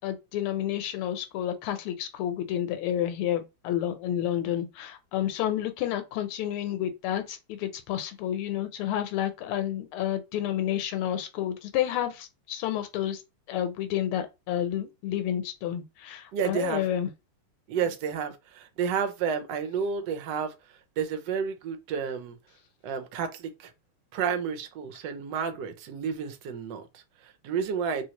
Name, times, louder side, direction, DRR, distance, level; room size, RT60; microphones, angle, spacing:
voice 1, 0.0-13.2 13.5-17.1, left 11 dB, 85° left, 1.5 m, -30 dB
voice 2, 16.3-16.8 17.7-22.4 22.8-23.7 24.1-28.0, right 7 dB, 70° right, 1.1 m, -31 dB
3.1 x 3.0 x 2.8 m
omnidirectional pair, 2.4 m